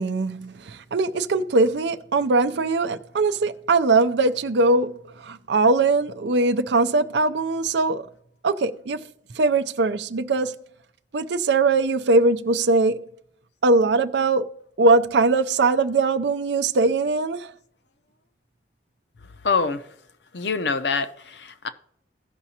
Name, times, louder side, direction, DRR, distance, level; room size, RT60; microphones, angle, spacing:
voice 1, 0.0-8.1 8.4-9.1 9.4-10.5 11.1-13.1 13.6-14.5 14.8-17.5, right 3 dB, 75° right, 0.5 m, -21 dB
voice 2, 19.4-19.8 20.3-21.7, left 4 dB, 70° left, 0.7 m, -25 dB
16.5 x 5.9 x 2.8 m
head